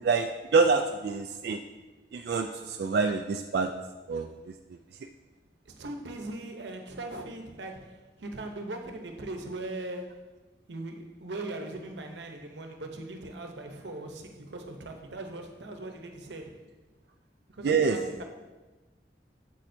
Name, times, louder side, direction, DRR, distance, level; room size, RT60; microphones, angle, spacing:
voice 1, 0.0-1.6 2.1-3.7 4.1-4.3 17.6-18.0, right 4 dB, 65° right, 5 dB, 0.3 m, -26 dB
voice 2, 5.6-10.3 10.7-16.7 17.5-18.2, right 2 dB, 90° right, 4 dB, 0.9 m, -40 dB
8.6 x 7.1 x 2.7 m, 1.2 s
head